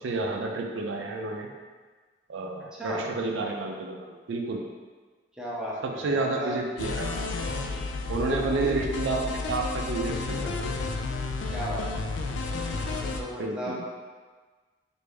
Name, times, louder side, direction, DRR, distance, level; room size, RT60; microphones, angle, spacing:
voice 1, 0.0-1.5 2.3-4.6 5.8-7.3 8.1-10.7 13.4-13.8, right 3 dB, 80° right, 1 dB, 0.4 m, -30 dB
voice 2, 5.3-6.6 8.2-8.8 11.5-11.9 13.0-13.8, equal, 5° right, -6 dB, 0.6 m, -35 dB
sound 1, 6.8-13.2, left 3 dB, 75° left, 0.3 m, -31 dB
3.3 x 2.5 x 3.3 m, 1.4 s
head